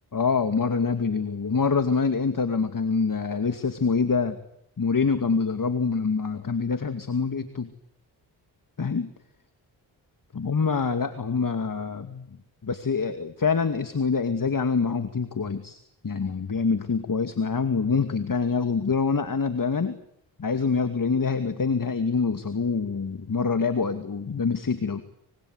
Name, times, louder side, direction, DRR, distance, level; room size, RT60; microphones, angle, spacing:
voice 1, 0.1-4.4 4.8-7.7 8.8-9.1 10.3-12.3 12.6-15.8 16.0-20.0 20.4-25.0, left 5 dB, 40° left, 9 dB, 2.5 m, -25 dB
25.5 x 23.5 x 8.1 m, 0.74 s
supercardioid pair, 45°, 49 cm